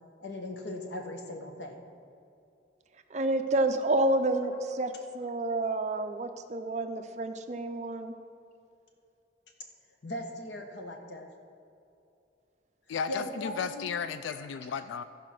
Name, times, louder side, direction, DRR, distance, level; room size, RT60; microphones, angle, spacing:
voice 1, 0.2-1.8 10.0-11.3 13.1-13.9 14.3-14.5, left 1 dB, 75° left, 3 dB, 1.2 m, -39 dB
voice 2, 3.1-8.1, right 2 dB, 40° right, 7 dB, 0.5 m, -29 dB
voice 3, 12.9-15.0, left 6 dB, 90° left, 12 dB, 0.3 m, -34 dB
14.5 x 4.9 x 5.9 m, 2.7 s
head